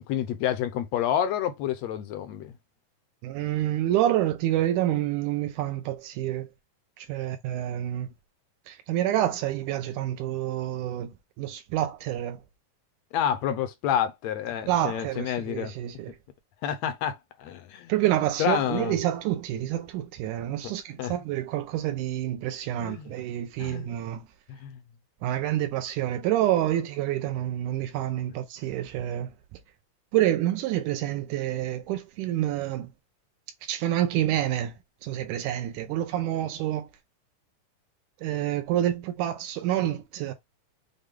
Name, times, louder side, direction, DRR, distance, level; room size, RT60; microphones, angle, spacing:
voice 1, 0.0-2.5 13.1-15.7 16.6-17.9 18.4-19.0 21.0-21.2 22.8-23.1 23.6-23.9 24.6-24.8, left 10 dB, 75° left, 1.6 m, -29 dB
voice 2, 3.2-6.5 7.0-8.1 8.7-11.1 11.4-12.4 14.7-16.2 17.9-24.2 25.2-29.3 30.1-32.9 33.6-34.7 35.0-36.9 38.2-40.3, right 12 dB, 80° right, 2.1 m, -28 dB
6.6 x 2.2 x 3.6 m
omnidirectional pair, 3.6 m